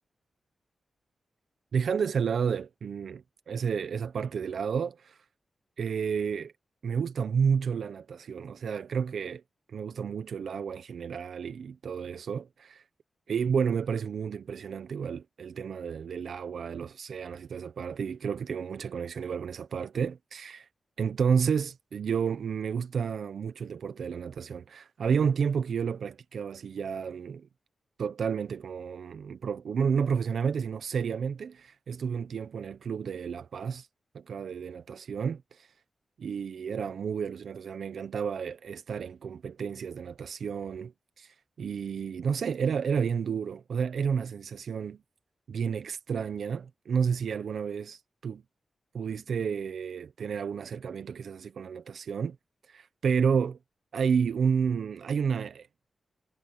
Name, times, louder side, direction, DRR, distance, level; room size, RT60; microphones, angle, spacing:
voice 1, 1.7-5.2 5.8-6.5 6.8-9.4 9.7-12.8 13.3-20.7 21.0-27.5 28.0-33.9 34.1-35.4 36.2-45.0 45.5-48.4 48.9-52.4 52.7-53.6 53.9-55.7, right 6 dB, 80° right, 0.9 m, -31 dB
cardioid pair, 60°, 0 cm